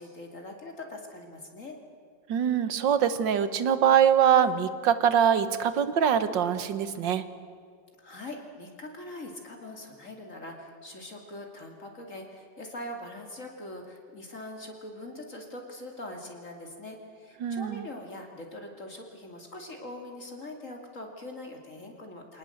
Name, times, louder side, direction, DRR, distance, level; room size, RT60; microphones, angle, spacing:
voice 1, 0.0-1.8 8.0-22.4, left 1 dB, 45° left, 3 dB, 2.8 m, -42 dB
voice 2, 2.3-7.2 17.4-17.9, right 8 dB, 85° right, 12 dB, 1.9 m, -23 dB
25.0 x 19.0 x 7.8 m, 2.2 s
omnidirectional pair, 1.9 m